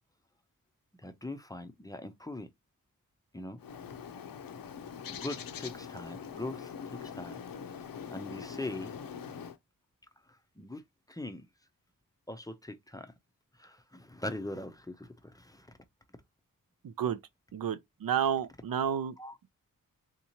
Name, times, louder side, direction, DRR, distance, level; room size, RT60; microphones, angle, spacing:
voice 1, 1.0-2.5 3.3-3.6 5.1-7.4 7.7-8.9 10.3-10.8 11.1-11.4 12.3-13.1 13.6-15.7 19.2-19.4, left 2 dB, 10° left, 0.5 m, -41 dB
Bird, 3.6-9.6, left 7 dB, 80° left, 0.6 m, -43 dB
voice 2, 16.8-17.2 17.5-19.1, right 8 dB, 80° right, 0.6 m, -31 dB
3.6 x 2.8 x 2.8 m
wide cardioid pair, 100°, 34 cm